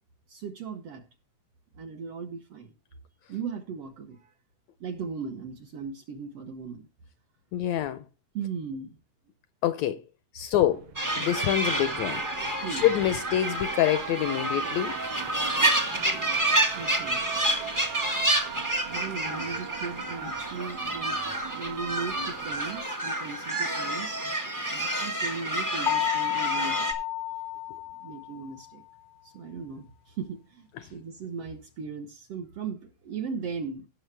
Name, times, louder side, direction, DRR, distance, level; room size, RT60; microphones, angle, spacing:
voice 1, 0.3-1.0 1.7-2.7 3.3-4.3 4.8-6.9 8.3-9.0 12.6-12.8 16.7-17.3 18.9-24.2 24.7-26.9 28.0-28.8 29.2-33.9, right 5 dB, 65° right, 1.6 m, -37 dB
voice 2, 7.5-8.1 9.6-10.1 10.3-12.2 12.7-15.0 30.8-30.9, left 12 dB, 75° left, 1.7 m, -26 dB
sound 1, 10.7-22.8, right 11 dB, 90° right, 1.3 m, -40 dB
sound 2, 10.9-26.9, right 1 dB, 30° right, 0.3 m, -29 dB
sound 3, 25.9-28.6, left 15 dB, 45° left, 0.6 m, -31 dB
17.5 x 6.4 x 3.3 m
omnidirectional pair, 3.6 m